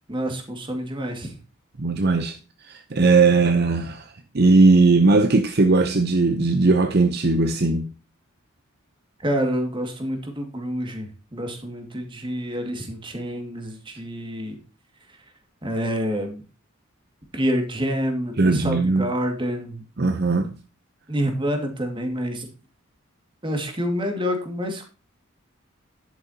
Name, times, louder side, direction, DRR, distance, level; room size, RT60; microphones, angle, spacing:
voice 1, 0.1-1.4 9.2-14.5 15.6-16.4 17.3-19.8 21.1-22.5 23.4-24.9, equal, 25° right, 2.2 m, -27 dB
voice 2, 1.8-2.4 2.7-4.0 4.3-7.9 18.4-19.1 20.0-20.5, right 3 dB, 50° right, 0.8 m, -18 dB
11.0 x 8.7 x 2.9 m
head